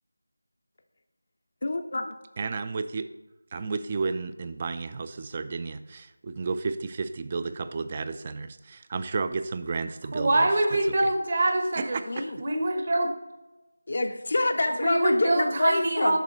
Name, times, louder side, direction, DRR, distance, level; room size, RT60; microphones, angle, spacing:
voice 1, 1.6-2.1 12.1-12.4 13.9-16.2, left 2 dB, 50° left, 6 dB, 0.4 m, -26 dB
voice 2, 2.4-3.1 3.5-10.5 11.8-12.3, right 4 dB, 25° right, 11 dB, 0.3 m, -32 dB
voice 3, 10.1-12.0 12.4-13.1 14.8-16.2, right 2 dB, 40° right, 4 dB, 1.2 m, -24 dB
6.8 x 5.1 x 4.5 m, 1.1 s
figure-of-eight pair, 165°, 0 cm